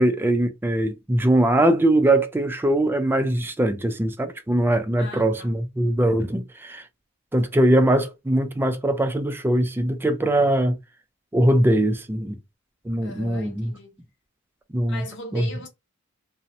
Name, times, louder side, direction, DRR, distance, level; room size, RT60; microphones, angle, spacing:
voice 1, 0.0-6.8 7.3-10.8 11.3-12.4 12.9-13.7 14.7-15.0 15.3-15.5, right 1 dB, 10° right, 0.3 m, -21 dB
voice 2, 5.0-5.5 13.0-14.0 14.9-15.7, equal, 55° left, 0.9 m, -38 dB
2.5 x 2.0 x 2.7 m
head